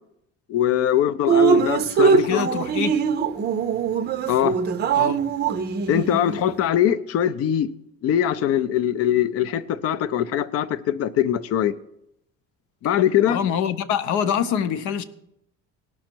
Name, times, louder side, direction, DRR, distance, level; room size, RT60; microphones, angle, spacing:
voice 1, 0.5-2.5 4.3-4.6 5.9-7.7 8.0-11.7 12.8-13.4, left 10 dB, 50° left, 0.5 m, -22 dB
Drip, 1.3-6.5, right 6 dB, 35° right, 0.5 m, -22 dB
voice 2, 2.0-3.0 4.9-5.2 13.3-15.0, left 8 dB, 75° left, 0.8 m, -25 dB
18.0 x 6.3 x 4.5 m
cardioid pair, 160°, 30 cm